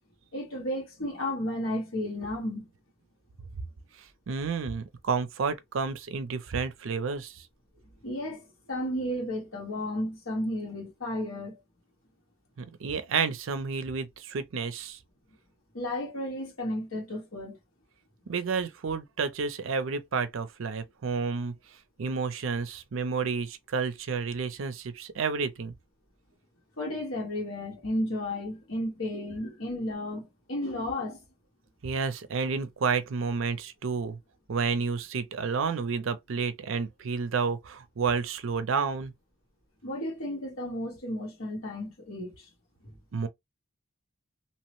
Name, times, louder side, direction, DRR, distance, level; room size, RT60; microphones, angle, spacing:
voice 1, 0.3-2.6 8.0-11.6 15.7-17.6 26.8-31.2 39.8-42.4 42.8-42.9, left 1 dB, 80° left, 1.4 m, -33 dB
voice 2, 4.3-7.4 12.6-15.0 18.3-21.5 22.0-25.7 31.8-34.2 34.5-39.1 43.1-43.3, right 5 dB, 75° right, 0.5 m, -30 dB
2.8 x 2.1 x 3.0 m
head